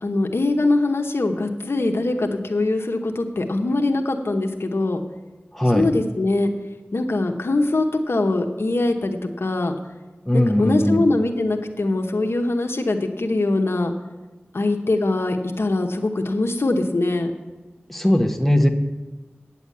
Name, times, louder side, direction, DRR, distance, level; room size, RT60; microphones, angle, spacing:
voice 1, 0.0-5.0 5.7-6.5 6.9-9.7 10.3-13.9 14.5-17.3, left 2 dB, 85° left, 4 dB, 0.9 m, -22 dB
voice 2, 5.5-5.9 10.3-11.0 17.9-18.7, left 1 dB, 5° left, 3 dB, 1.2 m, -19 dB
9.3 x 7.1 x 8.3 m, 1.2 s
wide cardioid pair, 40°, 4 cm